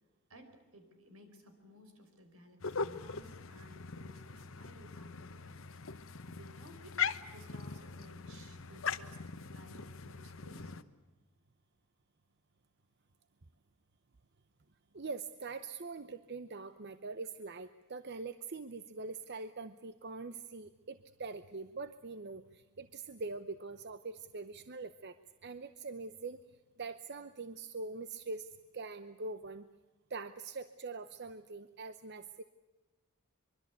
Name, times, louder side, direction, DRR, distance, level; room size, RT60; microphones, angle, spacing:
voice 1, 0.3-5.5 6.3-7.0 7.3-10.7, equal, 80° right, 7 dB, 4.8 m, -57 dB
sound 1, 2.6-10.8, left 6 dB, 65° left, 1.0 m, -41 dB
voice 2, 14.9-25.2 25.4-26.4 26.8-28.5 28.7-29.6 30.1-32.4, right 3 dB, 50° right, 11 dB, 0.8 m, -43 dB
24.5 x 23.5 x 8.3 m, 1.1 s
head